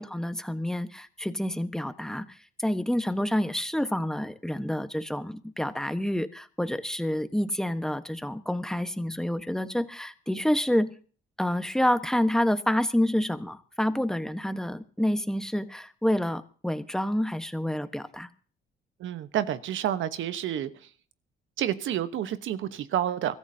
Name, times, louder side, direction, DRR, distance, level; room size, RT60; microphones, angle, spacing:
voice 1, 0.0-11.0 11.4-18.3, left 1 dB, 5° left, 10 dB, 1.2 m, -28 dB
voice 2, 19.0-20.7 21.6-23.4, right 11 dB, 75° right, 12 dB, 1.2 m, -29 dB
24.0 x 14.0 x 2.8 m, 0.42 s
cardioid pair, 90°, 20 cm